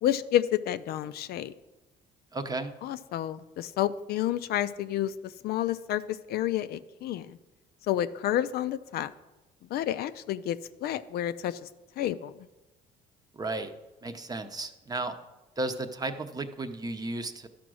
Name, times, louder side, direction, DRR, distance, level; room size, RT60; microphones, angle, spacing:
voice 1, 0.0-1.5 2.8-7.4 7.9-9.1 9.7-11.7 12.0-12.3, left 12 dB, 65° left, 13 dB, 0.4 m, -30 dB
voice 2, 2.3-2.7 13.4-13.7 14.0-15.1 15.6-17.5, right 2 dB, 20° right, 8 dB, 0.7 m, -34 dB
12.0 x 5.1 x 6.2 m, 1.1 s
cardioid pair, 110°, 17 cm